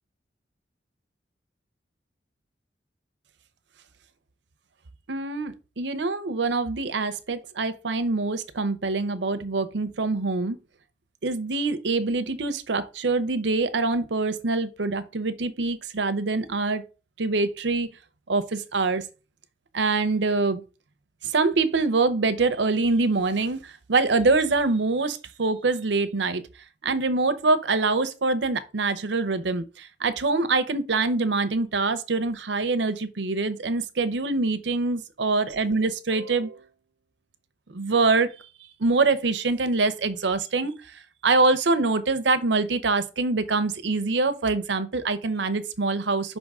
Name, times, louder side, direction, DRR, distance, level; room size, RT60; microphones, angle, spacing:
voice 1, 5.1-10.6 11.2-16.8 17.2-18.0 18.3-19.1 19.7-20.6 21.2-26.4 26.8-36.6 37.7-38.5 38.8-46.4, right 3 dB, 70° right, 0.7 m, -25 dB
5.6 x 3.6 x 5.4 m
head